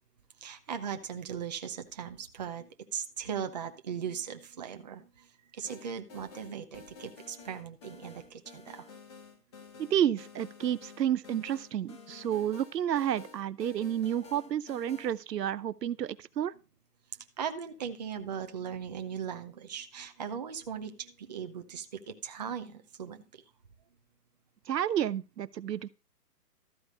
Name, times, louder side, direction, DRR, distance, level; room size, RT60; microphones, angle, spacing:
voice 1, 0.4-5.0 5.5-8.9 17.4-23.2, right 7 dB, 25° right, 0.6 m, -38 dB
sound 1, 5.6-15.2, left 4 dB, 15° left, 0.8 m, -51 dB
voice 2, 9.8-16.5 24.7-25.9, right 10 dB, 80° right, 0.7 m, -30 dB
13.5 x 4.7 x 6.4 m
hypercardioid pair, 155°, 48 cm